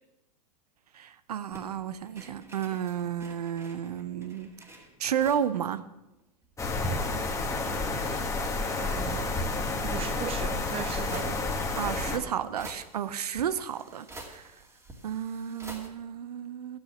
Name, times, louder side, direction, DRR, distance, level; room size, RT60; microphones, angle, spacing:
voice 1, 0.9-4.5 5.0-5.8 11.8-14.5 15.0-16.8, right 9 dB, 80° right, 0.7 m, -32 dB
sound 1, 1.5-5.6 5.9-6.0 6.2-7.3 7.8-9.1 10.3-10.4 11.1-15.9, right 1 dB, 15° right, 2.4 m, -49 dB
sound 2, 6.6-12.2, left 3 dB, 15° left, 1.9 m, -30 dB
voice 2, 8.8-9.4 9.8-11.4, right 10 dB, 30° right, 0.6 m, -38 dB
12.0 x 8.8 x 7.1 m
hypercardioid pair, 95°, 20 cm